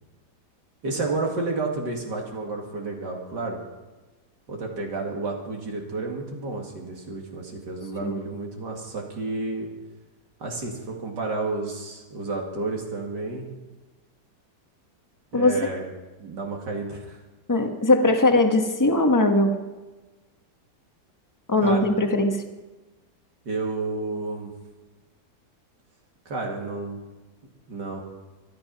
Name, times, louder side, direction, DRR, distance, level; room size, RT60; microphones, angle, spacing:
voice 1, 0.8-3.6 4.5-9.7 10.4-13.5 15.3-15.9 16.2-17.2 21.6-21.9 23.4-24.5 26.3-27.0 27.7-28.0, right 3 dB, 85° right, 0 dB, 2.8 m, -31 dB
voice 2, 17.5-19.5 21.5-22.4, left 2 dB, 10° left, 4 dB, 1.2 m, -20 dB
24.0 x 10.5 x 5.4 m, 1.2 s
omnidirectional pair, 1.8 m